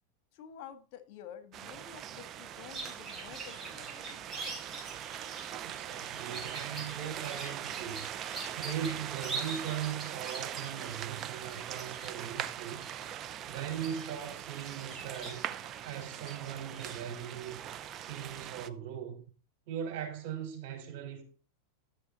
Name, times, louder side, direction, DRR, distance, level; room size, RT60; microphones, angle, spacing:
voice 1, 0.3-4.3, left 9 dB, 55° left, 1.6 m, -50 dB
sound 1, 1.5-18.7, right 10 dB, 35° right, 0.7 m, -41 dB
sound 2, 2.7-17.0, right 3 dB, 15° right, 4.6 m, -45 dB
voice 2, 5.6-8.1 8.5-12.8 13.5-15.4 15.8-17.6 18.1-19.2 19.7-21.2, right 9 dB, 55° right, 4.9 m, -39 dB
12.5 x 6.9 x 4.2 m
supercardioid pair, 125°, 0 cm